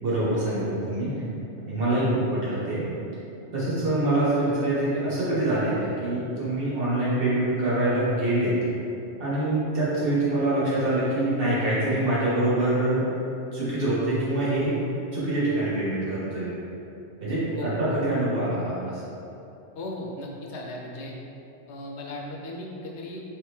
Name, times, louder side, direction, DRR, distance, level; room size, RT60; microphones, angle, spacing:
voice 1, 0.0-1.1 1.6-2.9 3.5-8.5 9.2-13.0 13.5-14.7 15.1-16.6 17.2-19.0, right 1 dB, 55° right, -9 dB, 1.4 m, -25 dB
voice 2, 19.7-21.1 21.7-23.2, left 1 dB, 80° left, -1 dB, 0.9 m, -36 dB
3.3 x 3.3 x 3.2 m, 2.9 s
omnidirectional pair, 1.2 m